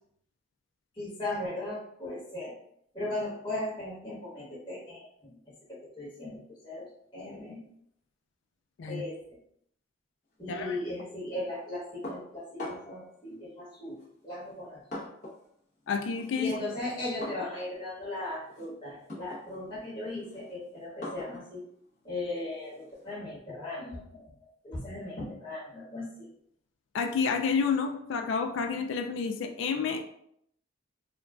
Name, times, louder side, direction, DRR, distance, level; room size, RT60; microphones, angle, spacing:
voice 1, 0.9-2.5 2.9-5.4 5.7-7.6 8.9-9.2 10.4-14.0 14.2-15.1 16.4-21.6 22.0-26.3, left 2 dB, 20° left, -11 dB, 1.3 m, -37 dB
sound 1, 12.0-13.1 14.0-15.5 15.8-23.1, left 2 dB, 40° left, 0.9 m, -44 dB
voice 2, 15.9-16.6 26.9-30.1, left 5 dB, 70° left, 4 dB, 0.3 m, -29 dB
3.7 x 2.3 x 2.3 m, 0.71 s
head